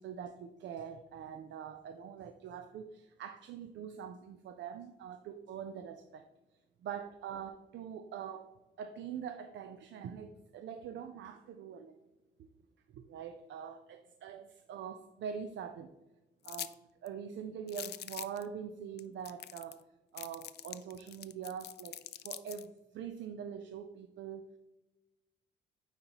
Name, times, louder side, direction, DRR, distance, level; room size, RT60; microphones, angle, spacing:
voice 1, 0.0-6.3 6.8-11.9 12.4-12.5 12.9-15.9 16.4-19.8 20.1-24.6, right 8 dB, 70° right, 8 dB, 0.5 m, -44 dB
sound 1, 16.4-16.7 17.1-17.2 17.7-18.4 19.0-19.1 19.2-19.8 20.2-22.6, left 12 dB, 55° left, 0.4 m, -44 dB
9.5 x 3.9 x 2.9 m, 1.1 s
cardioid pair, 90°, 20 cm